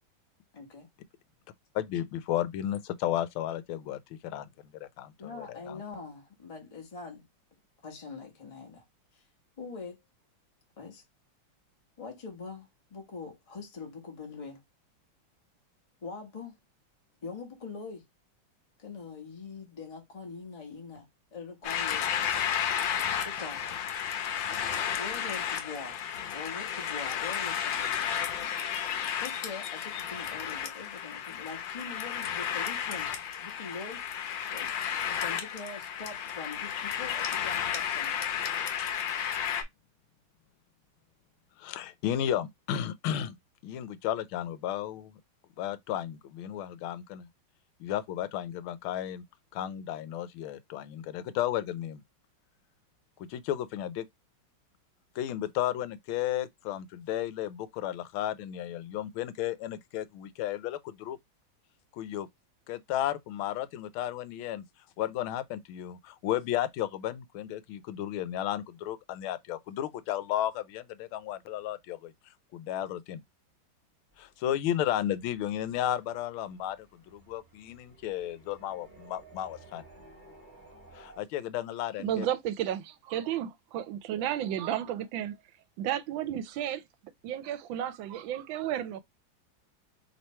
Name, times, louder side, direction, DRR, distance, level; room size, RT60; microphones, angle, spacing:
voice 1, 0.5-0.9 5.2-7.2 7.8-8.8 9.1-9.2 9.6-10.0 10.8-11.0 12.0-14.6 16.0-16.6 17.2-18.0 18.8-21.1 21.3-22.5 23.2-23.8 25.0-26.0 26.3-28.0 28.3-28.6 29.2-33.1 33.4-34.0 34.5-38.5, left 4 dB, 20° left, 1.0 m, -43 dB
voice 2, 1.7-4.5 4.8-5.8 41.6-43.4 43.6-45.2 45.6-47.3 47.8-49.2 49.5-52.0 53.2-54.1 55.1-61.2 61.9-62.3 62.7-64.6 65.0-72.1 72.5-73.2 74.2-79.8 80.9-82.3, left 11 dB, 85° left, 1.4 m, -33 dB
sound 1, 21.6-39.6, left 9 dB, 70° left, 1.4 m, -32 dB
sound 2, 74.1-81.2, right 2 dB, 10° right, 1.4 m, -56 dB
voice 3, 82.0-85.4 85.8-86.8 87.2-89.0, right 11 dB, 75° right, 1.3 m, -32 dB
3.3 x 3.0 x 4.2 m
omnidirectional pair, 2.2 m